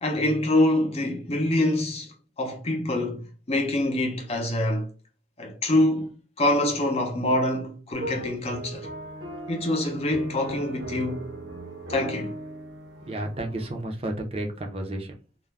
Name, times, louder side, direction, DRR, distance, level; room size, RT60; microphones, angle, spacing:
voice 1, 0.0-4.9 5.4-8.9 9.5-11.3 11.9-12.3, left 1 dB, 30° left, 0.6 m, -25 dB
sound 1, 7.9-13.8, right 1 dB, 70° right, 0.7 m, -38 dB
voice 2, 13.0-15.1, right 1 dB, 30° right, 0.5 m, -32 dB
2.4 x 2.1 x 3.2 m
head